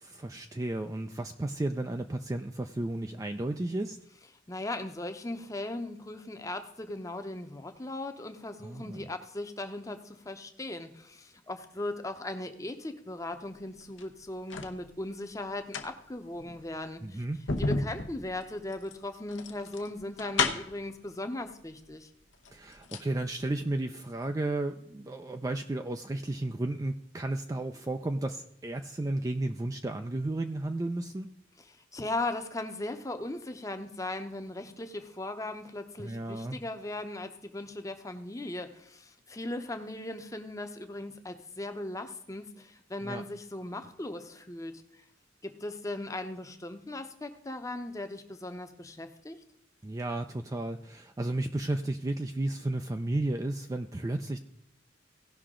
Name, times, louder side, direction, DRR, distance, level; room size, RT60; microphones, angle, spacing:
voice 1, 0.0-4.0 8.6-9.1 17.0-17.4 22.5-31.3 36.0-36.6 43.0-43.2 49.8-54.4, right 2 dB, 20° right, 6 dB, 0.4 m, -33 dB
voice 2, 4.5-17.2 17.6-22.1 31.9-44.8 45.4-49.4, left 2 dB, 15° left, 7 dB, 0.8 m, -38 dB
sound 1, 13.8-14.8 15.5-20.9 21.8-21.9 22.3-23.1 23.4-23.5, left 3 dB, 80° left, 1.0 m, -33 dB
17.0 x 5.7 x 3.7 m, 0.73 s
head